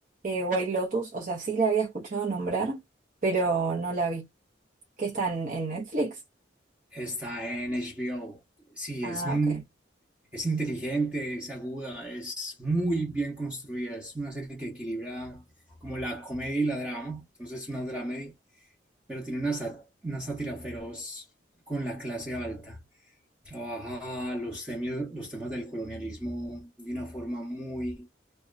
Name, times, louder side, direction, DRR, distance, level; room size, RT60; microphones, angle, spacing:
voice 1, 0.2-2.8 3.2-4.3 5.0-6.2 9.0-9.4, right 4 dB, 40° right, 0.8 m, -28 dB
voice 2, 6.9-8.4 8.7-9.6 10.3-15.4 15.8-18.3 19.1-21.3 21.7-22.8 23.4-28.1, right 2 dB, 5° right, 0.8 m, -33 dB
2.7 x 2.2 x 2.4 m
head